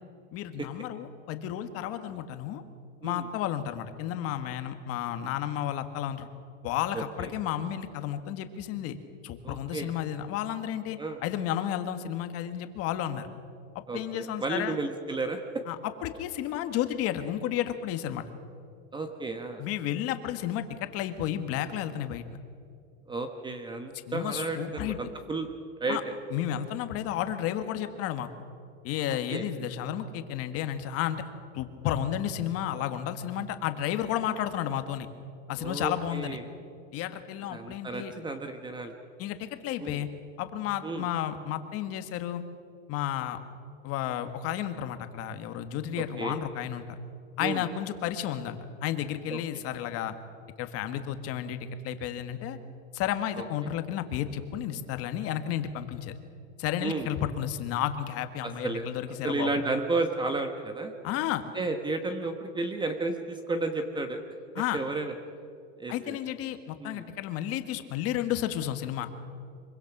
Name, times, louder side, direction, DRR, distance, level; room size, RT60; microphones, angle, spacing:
voice 1, 0.3-2.6 3.0-6.3 6.6-9.0 9.2-13.3 13.9-14.8 15.7-15.8 16.0-18.2 19.6-22.2 24.1-25.0 25.9-26.0 26.3-28.3 28.8-31.2 31.5-35.1 35.5-36.4 36.9-38.1 39.2-40.1 40.4-42.5 42.9-43.4 43.8-46.8 47.4-50.1 50.6-52.6 52.9-56.2 56.6-59.6 61.0-61.4 64.5-64.8 65.9-69.1, left 11 dB, 40° left, 9 dB, 1.6 m, -32 dB
voice 2, 6.9-7.3 9.4-9.9 11.0-11.2 13.9-15.4 18.9-19.6 23.1-25.5 25.8-26.0 29.3-29.4 35.6-36.4 37.5-38.9 39.8-40.0 40.8-41.1 46.0-46.4 47.4-47.6 49.3-49.6 53.4-53.5 56.8-57.1 58.4-60.9 61.5-64.2 64.7-65.1 65.8-66.2 66.8-67.0, right 3 dB, 10° right, 6 dB, 1.1 m, -32 dB
25.0 x 23.5 x 6.1 m, 2.4 s
supercardioid pair, 150°, 37 cm